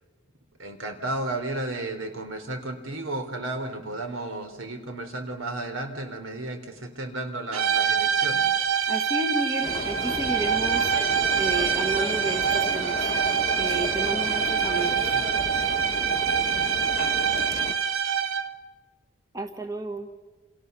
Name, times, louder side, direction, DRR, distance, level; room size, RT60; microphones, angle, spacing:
voice 1, 0.6-8.5, right 2 dB, 70° right, 7 dB, 3.7 m, -33 dB
sound 1, 7.5-18.6, right 7 dB, 90° right, 1.4 m, -25 dB
voice 2, 8.9-10.9 11.4-13.1 13.5-15.1 19.3-20.1, right 2 dB, 15° right, 5 dB, 1.4 m, -32 dB
sound 2, 9.6-17.7, left 3 dB, 30° left, 1.0 m, -34 dB
29.0 x 27.5 x 6.9 m, 1.3 s
head